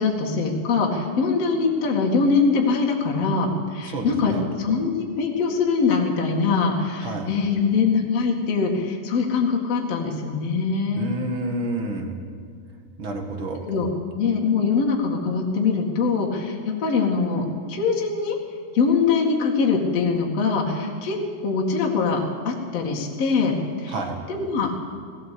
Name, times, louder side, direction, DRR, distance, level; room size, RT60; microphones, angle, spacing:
voice 1, 0.0-4.3 4.6-4.9 5.2-11.1 13.7-13.9 14.1-18.4 18.7-23.9 24.3-24.8, left 4 dB, 45° left, -1 dB, 2.6 m, -23 dB
voice 2, 3.8-4.5 7.0-7.3 10.9-12.1 13.0-13.6 23.9-24.2, right 2 dB, 45° right, 4 dB, 1.6 m, -29 dB
19.0 x 17.0 x 8.5 m, 2.3 s
omnidirectional pair, 5.0 m